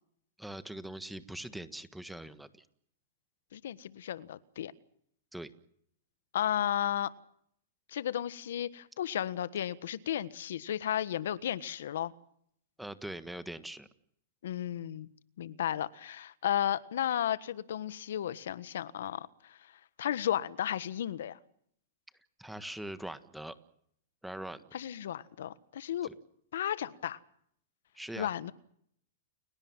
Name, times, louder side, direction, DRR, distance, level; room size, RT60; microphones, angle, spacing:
voice 1, 0.4-2.7 5.3-5.5 12.8-13.9 22.4-23.6 24.2-24.6 26.0-26.1 27.9-28.3, right 1 dB, ahead, 12 dB, 1.5 m, -42 dB
voice 2, 3.5-4.7 6.3-7.1 7.9-12.1 14.4-15.1 15.4-19.6 20.0-21.4 24.7-26.1 26.5-27.2 28.2-28.5, left 10 dB, 75° left, 16 dB, 1.4 m, -34 dB
30.0 x 17.5 x 7.4 m, 0.69 s
hypercardioid pair, 150°, 0 cm